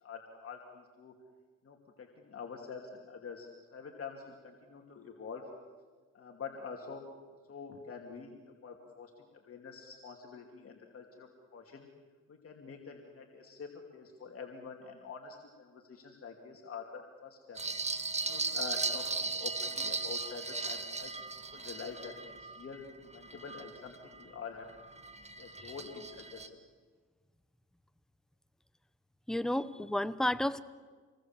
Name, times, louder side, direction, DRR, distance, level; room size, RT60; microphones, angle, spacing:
voice 1, 0.0-1.1 1.6-5.4 6.1-7.0 7.5-8.3 8.6-11.9 12.3-17.6 18.2-21.2 21.5-22.8 23.1-24.7 25.4-26.6, left 5 dB, 50° left, 1 dB, 2.7 m, -46 dB
sound 1, 17.5-24.2 24.7-26.5, right 3 dB, 20° right, 1.3 m, -37 dB
voice 2, 29.3-30.6, left 1 dB, ahead, 13 dB, 0.9 m, -31 dB
27.0 x 21.5 x 7.5 m, 1.5 s
cardioid pair, 90°, 30 cm